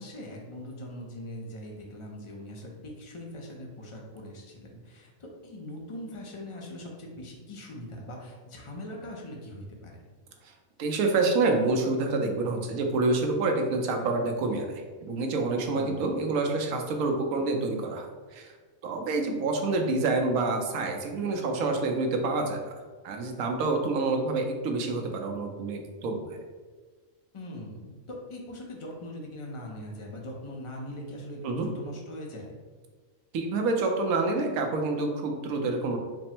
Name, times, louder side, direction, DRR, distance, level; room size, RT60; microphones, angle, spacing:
voice 1, 0.0-9.9 15.7-16.3 27.3-32.5, left 1 dB, 55° left, -1 dB, 0.3 m, -41 dB
voice 2, 10.8-18.5 18.8-22.6 23.0-26.4 31.4-31.7 33.3-36.0, right 3 dB, 85° right, 3 dB, 1.1 m, -27 dB
4.2 x 2.0 x 4.3 m, 1.4 s
omnidirectional pair, 1.5 m